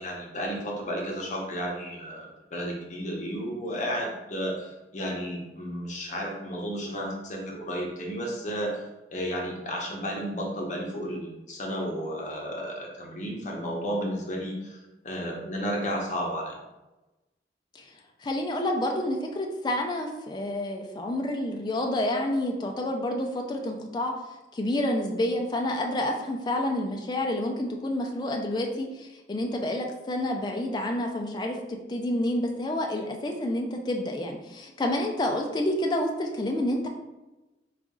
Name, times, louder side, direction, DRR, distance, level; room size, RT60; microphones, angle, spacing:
voice 1, 0.0-8.8 9.1-14.8 15.0-16.6, equal, 45° left, -1 dB, 0.8 m, -32 dB
voice 2, 18.2-24.1 24.5-36.9, left 1 dB, 25° left, 2 dB, 0.3 m, -29 dB
3.9 x 2.4 x 3.6 m, 1.0 s
head